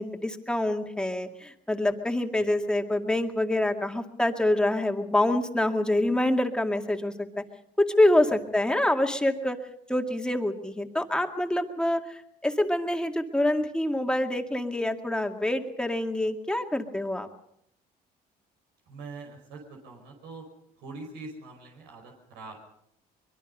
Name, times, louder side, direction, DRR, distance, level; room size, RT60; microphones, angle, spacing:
voice 1, 0.0-7.4 7.8-9.6 9.9-17.3, left 1 dB, 5° left, 4 dB, 2.1 m, -26 dB
voice 2, 18.9-20.5 20.8-22.6, right 3 dB, 90° right, 1 dB, 5.2 m, -43 dB
24.0 x 22.0 x 5.5 m, 0.74 s
cardioid pair, 110°, 17 cm